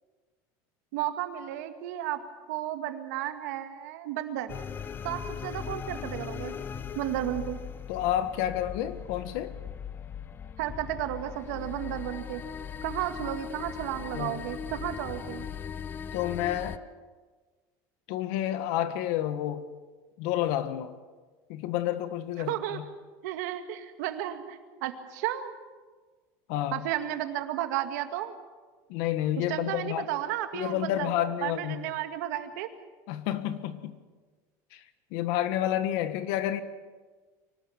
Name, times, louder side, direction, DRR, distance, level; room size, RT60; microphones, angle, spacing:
voice 1, 0.9-2.2 2.5-4.5 5.0-6.5 7.0-7.6 10.6-12.4 12.8-15.5 22.5-22.8 23.2-25.5 26.7-28.3 29.4-31.1 31.4-32.7, right 13 dB, 90° right, 8 dB, 2.1 m, -33 dB
sound 1, 4.5-16.8, left 7 dB, 25° left, 0.7 m, -39 dB
voice 2, 7.9-9.6 14.1-14.4 16.1-16.8 18.1-19.6 20.2-20.9 21.5-22.8 26.5-26.8 28.9-30.1 30.5-31.8 33.1-34.0 34.7-34.8 35.1-36.6, left 12 dB, 70° left, 11 dB, 1.6 m, -30 dB
24.5 x 18.5 x 7.2 m, 1.4 s
cardioid pair, 155°, 9 cm